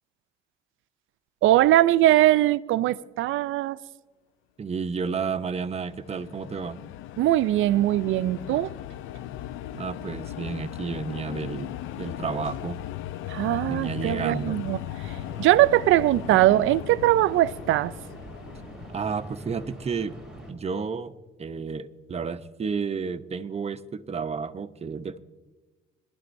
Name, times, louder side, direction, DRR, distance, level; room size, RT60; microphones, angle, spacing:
voice 1, 1.4-3.8 7.2-8.7 13.3-14.8 15.4-17.9, right 14 dB, 80° right, 0.4 m, -21 dB
voice 2, 4.6-6.8 9.7-11.7 12.0-12.8 13.7-14.6 18.9-20.1 20.5-21.1 21.4-25.2, right 5 dB, 30° right, 0.7 m, -31 dB
sound 1, 5.4-19.9, left 13 dB, 90° left, 0.4 m, -38 dB
sound 2, 15.0-20.5, right 1 dB, 5° right, 4.3 m, -44 dB
21.5 x 12.0 x 2.6 m
cardioid pair, 90°, 20 cm